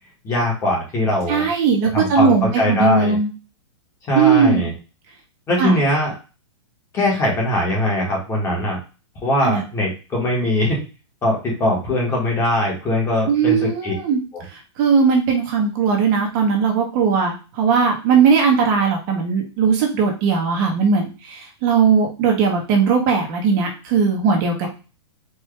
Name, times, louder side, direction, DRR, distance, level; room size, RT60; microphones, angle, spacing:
voice 1, 0.2-1.5 1.9-3.2 4.1-4.7 5.5-6.1 6.9-8.8 9.2-10.8 11.2-13.9 14.3-14.4, left 1 dB, 20° left, -2 dB, 1.6 m, -21 dB
voice 2, 1.3-3.3 4.1-4.6 5.6-5.7 9.4-9.6 13.3-14.2 14.5-24.7, right 6 dB, 40° right, 1 dB, 1.1 m, -18 dB
4.7 x 2.7 x 3.3 m, 0.32 s
hypercardioid pair, 155°, 16 cm